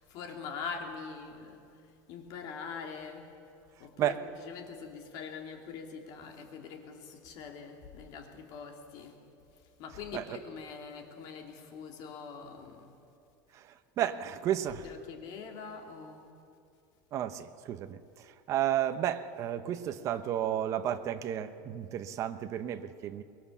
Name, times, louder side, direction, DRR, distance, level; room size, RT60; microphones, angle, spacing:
voice 1, 0.0-3.3 3.8-9.2 9.8-12.9 14.0-14.1 14.8-16.3, left 5 dB, 45° left, 3 dB, 2.7 m, -43 dB
voice 2, 14.0-14.8 17.1-23.2, right 11 dB, 35° right, 9 dB, 0.9 m, -32 dB
24.0 x 21.5 x 7.2 m, 2.5 s
cardioid pair, 165°, 9 cm